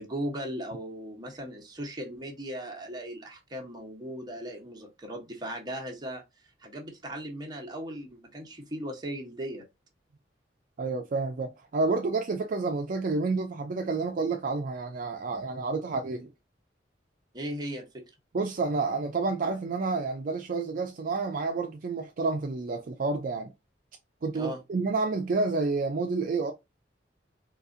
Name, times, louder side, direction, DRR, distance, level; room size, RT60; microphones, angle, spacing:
voice 1, 0.0-6.2 6.6-9.7 17.3-18.1 24.3-24.6, equal, 25° right, 1.0 m, -37 dB
voice 2, 10.8-16.3 18.3-23.5 24.2-26.5, right 3 dB, 50° right, 0.4 m, -29 dB
4.0 x 2.4 x 2.5 m
head